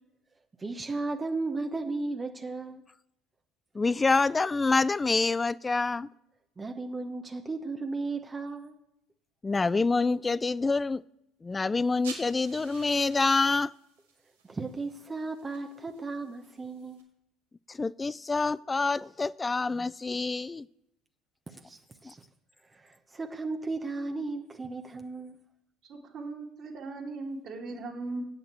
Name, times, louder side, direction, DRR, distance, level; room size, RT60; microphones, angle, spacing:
voice 1, 0.6-2.8 6.6-8.8 14.4-17.0 21.5-22.2 22.6-25.4, right 3 dB, 25° right, 5 dB, 1.0 m, -35 dB
voice 2, 3.7-6.1 9.4-11.0 11.4-13.7 17.7-20.7 22.0-22.1, left 3 dB, 20° left, 21 dB, 0.4 m, -27 dB
sound 1, 11.8-17.0, right 5 dB, 90° right, 3.2 m, -50 dB
voice 3, 25.8-28.2, right 3 dB, 50° right, -1 dB, 2.5 m, -38 dB
8.5 x 6.8 x 8.0 m, 0.82 s
hypercardioid pair, 65°, 0 cm